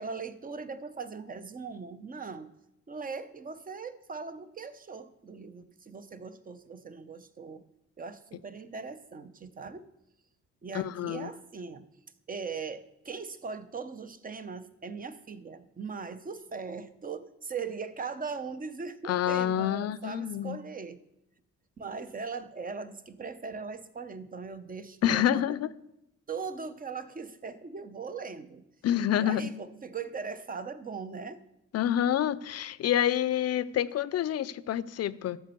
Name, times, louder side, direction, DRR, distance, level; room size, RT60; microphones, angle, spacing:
voice 1, 0.0-2.5 2.9-7.6 8.0-9.8 10.6-11.9 12.3-21.0 21.8-25.4 26.3-28.6 29.1-31.4, right 5 dB, 30° right, 0.8 m, -40 dB
voice 2, 10.7-11.3 19.1-20.6 25.0-25.7 28.8-29.5 31.7-35.4, left 11 dB, 55° left, 0.5 m, -28 dB
13.0 x 4.4 x 6.8 m
cardioid pair, 90°, 30 cm